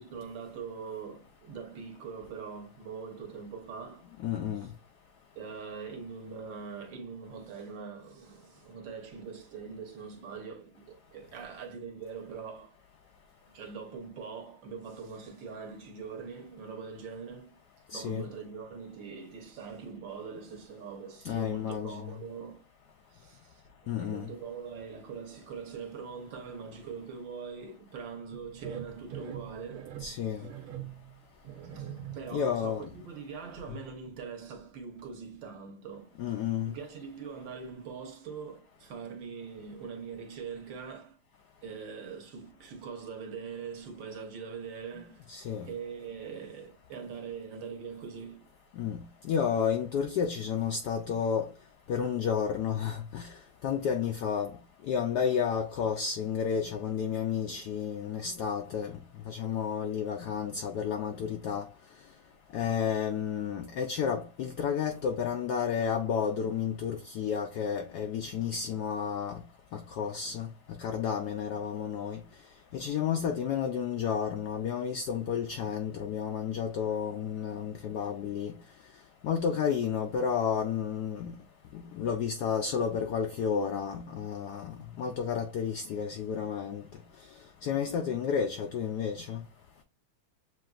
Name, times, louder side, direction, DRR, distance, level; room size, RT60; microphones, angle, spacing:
voice 1, 0.0-4.1 4.6-4.7 5.3-12.7 13.5-17.5 17.9-22.7 23.1-30.0 30.3-30.4 31.7-36.2 36.7-41.2 41.6-48.5 88.0-88.2, right 6 dB, 65° right, 1.7 m, -42 dB
voice 2, 4.2-4.7 17.9-18.3 21.2-22.2 23.9-24.3 30.0-30.5 32.3-32.9 36.2-36.7 45.3-45.7 48.8-51.5 51.9-53.3 53.6-54.5 54.9-58.9 59.3-61.7 62.5-69.4 69.7-70.5 70.8-72.2 72.7-78.5 79.2-81.3 81.7-86.8 87.6-89.4, left 7 dB, 90° left, 0.8 m, -31 dB
sound 1, 28.3-32.5 32.8-33.0 33.4-34.2 34.5-34.6 35.0-35.1, right 10 dB, 85° right, 1.6 m, -43 dB
7.6 x 2.5 x 2.3 m
omnidirectional pair, 2.3 m